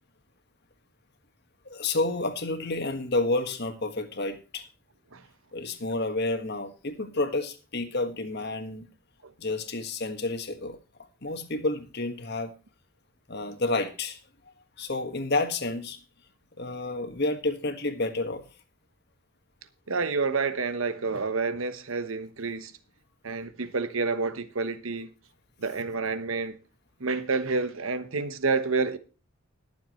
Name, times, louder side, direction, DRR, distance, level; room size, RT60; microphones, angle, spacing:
voice 1, 1.6-4.7 5.5-8.9 9.4-12.5 13.3-14.2 14.8-16.0 16.6-18.5, left 2 dB, 50° left, 1.6 m, -30 dB
voice 2, 19.9-22.7 23.2-25.1 25.6-26.6 27.0-29.0, right 4 dB, 75° right, 1.0 m, -29 dB
21.0 x 7.3 x 3.1 m
head